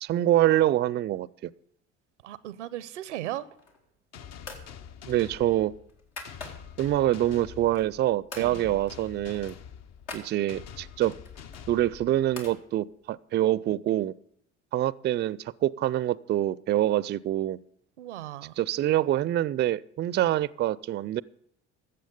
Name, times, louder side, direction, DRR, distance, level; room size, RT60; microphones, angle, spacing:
voice 1, 0.0-1.3 5.1-5.7 6.8-9.5 10.1-11.1 11.7-14.1 14.7-17.6 18.6-21.2, right 13 dB, 30° right, 22 dB, 0.4 m, -25 dB
voice 2, 2.2-3.5 8.4-8.8 18.0-18.6, right 13 dB, 90° right, 19 dB, 0.6 m, -37 dB
sound 1, 3.5-4.0 4.4-4.7 5.1-6.9 7.3-8.0 8.3-8.5 8.9-9.0 9.3-10.3 11.1-12.6, left 3 dB, 75° left, 2.1 m, -44 dB
sound 2, 4.1-12.6, left 8 dB, 50° left, 0.7 m, -46 dB
13.5 x 7.7 x 5.3 m, 0.68 s
hypercardioid pair, 60°, 35 cm